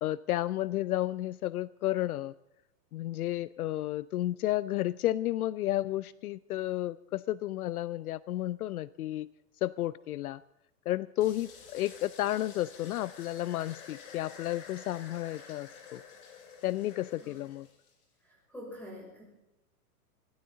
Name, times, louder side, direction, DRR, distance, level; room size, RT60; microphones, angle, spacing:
voice 1, 0.0-2.3 2.9-9.3 9.6-10.4 10.9-16.0 16.6-17.7, left 14 dB, 65° left, 19 dB, 0.5 m, -32 dB
sound 1, 11.2-17.7, left 6 dB, 50° left, 2.7 m, -51 dB
sound 2, 11.2-18.0, left 5 dB, 30° left, 3.2 m, -56 dB
voice 2, 18.2-19.2, left 1 dB, 5° left, -4 dB, 6.4 m, -45 dB
22.5 x 16.0 x 3.9 m, 0.91 s
hypercardioid pair, 165°, 48 cm